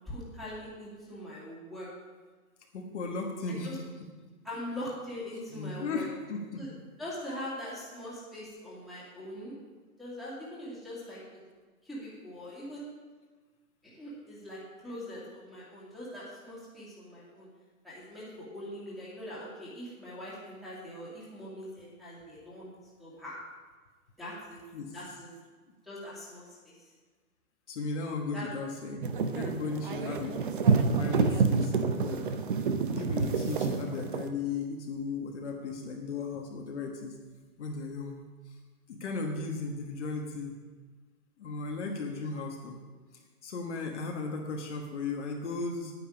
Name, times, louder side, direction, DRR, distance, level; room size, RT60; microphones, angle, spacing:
voice 1, 0.0-1.9 3.6-3.8 4.4-6.1 6.6-6.7 7.0-9.6 10.0-11.2 11.8-12.9 13.8-17.5 17.8-22.7 23.0-23.4 24.2-24.6 24.9-25.3 25.8-26.7 28.3-28.5, left 1 dB, ahead, -10 dB, 2.3 m, -42 dB
voice 2, 2.7-3.8 5.5-6.6 24.7-24.9 27.7-30.4 30.6-32.3 32.9-37.1 37.6-38.2 38.4-38.6 38.9-40.6 41.4-42.8 43.4-45.9, left 4 dB, 50° left, 1 dB, 1.4 m, -36 dB
sound 1, 29.0-34.3, right 5 dB, 35° right, 0.6 m, -28 dB
9.8 x 9.4 x 5.1 m, 1.4 s
hypercardioid pair, 160°, 45 cm